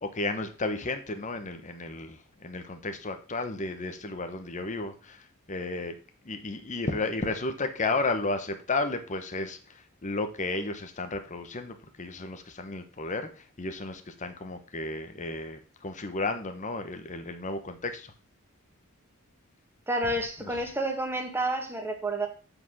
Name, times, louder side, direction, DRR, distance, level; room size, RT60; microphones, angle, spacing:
voice 1, 0.0-6.0 6.2-18.1 20.4-20.5, left 3 dB, 35° left, 1.0 m, -33 dB
voice 2, 19.9-22.3, right 1 dB, 10° right, 1.6 m, -29 dB
8.0 x 5.0 x 6.2 m
head